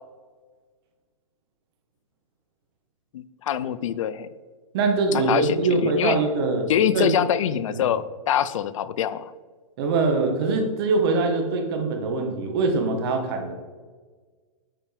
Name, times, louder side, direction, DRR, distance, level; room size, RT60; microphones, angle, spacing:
voice 1, 3.1-4.3 5.1-6.2 6.7-9.3, left 9 dB, 65° left, 15 dB, 0.5 m, -24 dB
voice 2, 4.7-6.7 6.9-7.1 7.7-7.9 9.8-13.5, right 3 dB, 45° right, 3 dB, 1.5 m, -23 dB
8.9 x 5.8 x 3.5 m, 1.5 s
hypercardioid pair, 150°, 18 cm